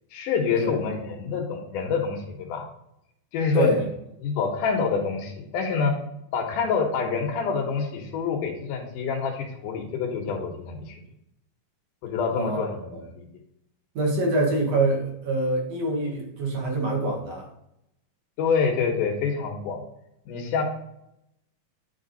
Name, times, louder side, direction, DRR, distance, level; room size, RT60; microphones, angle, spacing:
voice 1, 0.1-2.7 3.3-3.9 4.2-6.0 6.3-11.0 12.0-13.3 18.4-19.8 20.3-20.6, left 5 dB, 80° left, 1 dB, 2.7 m, -27 dB
voice 2, 3.5-3.8 12.3-13.0 13.9-17.5, right 2 dB, 55° right, -2 dB, 2.6 m, -25 dB
9.6 x 3.5 x 3.9 m, 0.81 s
omnidirectional pair, 3.7 m